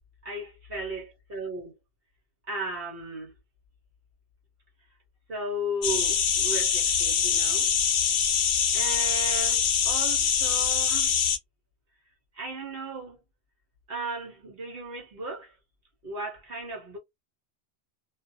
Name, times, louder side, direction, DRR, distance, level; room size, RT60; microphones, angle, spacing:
voice 1, 0.2-1.8 2.5-3.3 5.3-7.7 8.7-11.2 12.3-13.2 13.9-15.5 16.0-17.0, right 1 dB, 65° right, 1.1 m, -35 dB
sound 1, 5.8-11.4, left 7 dB, 65° left, 0.8 m, -24 dB
2.5 x 2.2 x 2.6 m
omnidirectional pair, 1.1 m